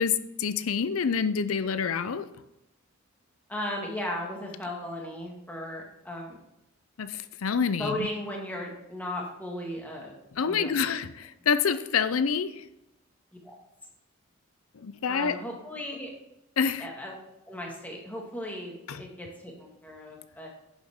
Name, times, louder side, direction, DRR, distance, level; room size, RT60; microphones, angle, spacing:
voice 1, 0.0-2.3 7.0-8.1 10.4-12.6 14.8-15.4 16.6-16.9 18.9-19.0, left 6 dB, 80° left, 13 dB, 0.6 m, -27 dB
voice 2, 3.5-6.4 7.8-10.2 10.4-11.0 13.4-13.6 15.1-16.1 16.8-17.1 17.5-20.5, left 1 dB, 10° left, -1 dB, 1.8 m, -36 dB
10.5 x 7.3 x 3.6 m, 0.88 s
head